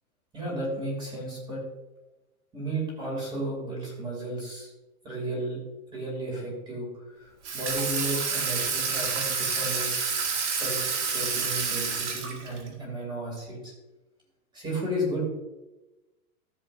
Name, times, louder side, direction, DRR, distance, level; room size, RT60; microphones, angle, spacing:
voice 1, 0.3-1.6 2.5-4.7 5.0-5.6 5.9-9.9 10.5-13.7 14.5-15.3, right 1 dB, 10° right, -3 dB, 2.5 m, -33 dB
Water tap faucet / Sink (filling or washing), 7.4-12.7, right 5 dB, 50° right, 1.8 m, -29 dB
13.5 x 7.2 x 2.5 m, 1.0 s
supercardioid pair, 170°, 45 cm